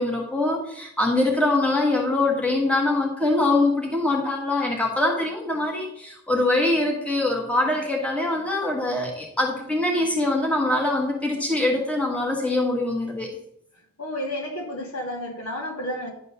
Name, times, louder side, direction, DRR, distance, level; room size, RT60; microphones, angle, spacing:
voice 1, 0.0-13.3, left 2 dB, 5° left, -1 dB, 1.5 m, -23 dB
voice 2, 14.0-16.1, left 1 dB, 80° left, 0 dB, 2.3 m, -31 dB
11.0 x 3.7 x 6.7 m, 0.73 s
head